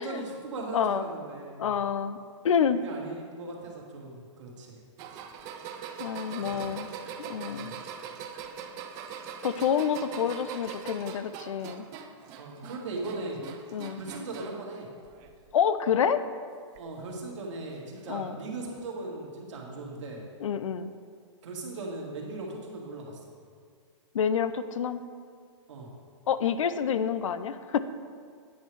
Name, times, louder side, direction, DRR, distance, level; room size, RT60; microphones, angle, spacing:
voice 1, 0.0-1.7 2.7-4.8 6.3-6.6 7.5-7.7 12.4-13.4 14.0-14.9 16.8-20.2 21.4-23.2 25.7-25.9, right 2 dB, 75° right, -1 dB, 2.0 m, -38 dB
voice 2, 0.7-1.0 1.6-2.2 2.4-2.8 6.0-6.9 7.2-7.7 9.4-11.9 13.7-14.0 15.5-16.2 18.1-18.4 20.4-20.9 24.1-25.0 26.3-27.8, left 7 dB, 90° left, 13 dB, 0.5 m, -28 dB
sound 1, 5.0-14.7 15.0-15.6 16.8-16.9 18.0-18.1, right 7 dB, 20° right, 0.4 m, -42 dB
9.4 x 5.7 x 4.7 m, 2.1 s
hypercardioid pair, 160°, 16 cm